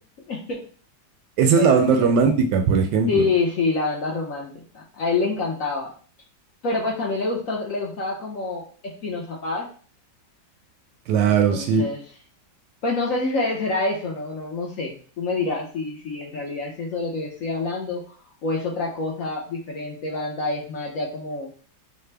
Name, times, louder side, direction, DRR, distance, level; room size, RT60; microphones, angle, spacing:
voice 1, 0.3-0.6 1.6-1.8 3.1-5.9 6.6-9.7 11.2-12.0 12.8-18.0 18.4-21.5, left 3 dB, 60° left, -1 dB, 0.9 m, -27 dB
voice 2, 1.4-3.3 11.1-11.8, right 6 dB, 75° right, 5 dB, 1.1 m, -18 dB
5.6 x 2.1 x 3.3 m, 0.42 s
omnidirectional pair, 2.0 m